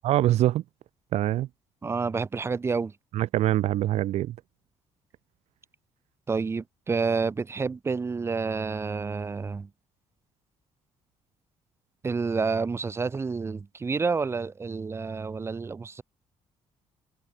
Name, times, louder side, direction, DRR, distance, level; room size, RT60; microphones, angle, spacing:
voice 1, 0.0-0.6 1.1-1.5 3.1-4.3, right 14 dB, 75° right, 3.1 m, -24 dB
voice 2, 1.8-2.9 6.3-9.7 12.0-16.0, right 4 dB, 25° right, 6.0 m, -29 dB
cardioid pair, 160°, 11 cm